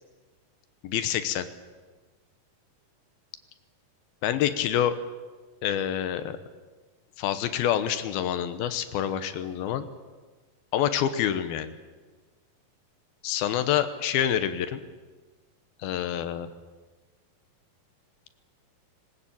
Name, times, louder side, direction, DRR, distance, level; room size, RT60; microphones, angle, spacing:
voice 1, 0.8-1.5 4.2-4.9 5.6-6.4 7.2-9.9 10.7-11.7 13.2-14.8 15.8-16.5, left 10 dB, 85° left, 11 dB, 2.9 m, -27 dB
20.0 x 19.5 x 8.6 m, 1.3 s
omnidirectional pair, 4.2 m